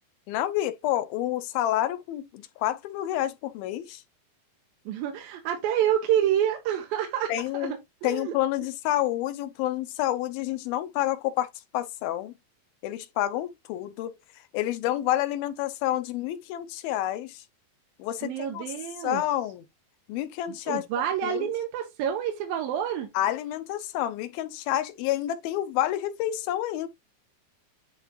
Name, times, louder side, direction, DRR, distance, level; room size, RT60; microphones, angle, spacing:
voice 1, 0.3-4.0 7.3-7.7 8.0-12.3 12.8-14.2 14.5-17.4 18.0-18.7 19.0-19.6 20.1-20.8 21.2-21.5 23.1-26.9, left 13 dB, 90° left, 2.7 m, -29 dB
voice 2, 4.9-8.3 18.2-19.2 20.5-23.1, right 10 dB, 80° right, 3.1 m, -28 dB
10.5 x 3.6 x 3.1 m
omnidirectional pair, 4.2 m